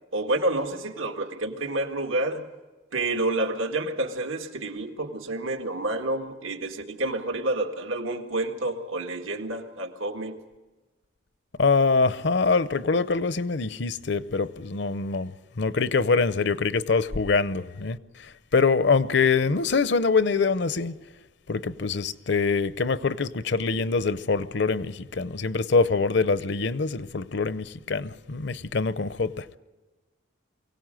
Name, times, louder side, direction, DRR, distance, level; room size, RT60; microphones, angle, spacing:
voice 1, 0.1-2.4 2.9-10.4, right 2 dB, 85° right, 1.9 m, -29 dB
voice 2, 11.6-21.0 21.5-29.6, left 4 dB, 60° left, 0.7 m, -24 dB
23.5 x 17.0 x 7.6 m
head